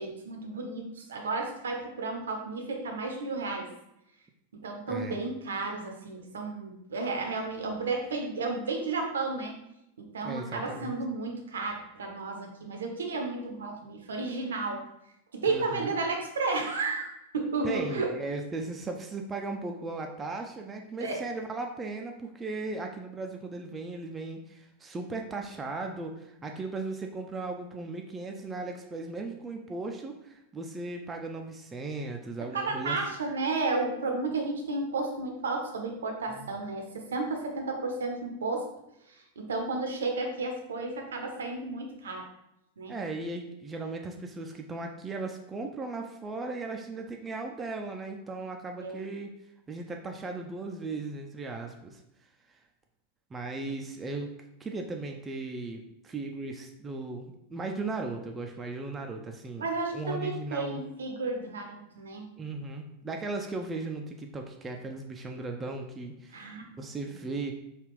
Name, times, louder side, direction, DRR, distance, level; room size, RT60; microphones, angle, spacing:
voice 1, 0.0-3.7 4.6-9.5 10.0-14.8 15.3-18.1 21.0-21.2 32.5-38.7 39.4-42.3 42.8-42.9 48.8-49.0 59.6-62.3 66.3-66.6, right 3 dB, 65° right, 3 dB, 0.6 m, -32 dB
voice 2, 10.2-10.9 15.5-15.9 17.6-33.0 36.3-36.5 42.9-49.3 49.7-52.0 52.5-52.6 53.3-54.3 54.6-59.6 59.9-60.8 62.4-66.5 66.8-67.5, right 3 dB, 15° right, 2 dB, 0.3 m, -37 dB
3.4 x 2.4 x 3.1 m, 0.85 s
figure-of-eight pair, 90°, 0 cm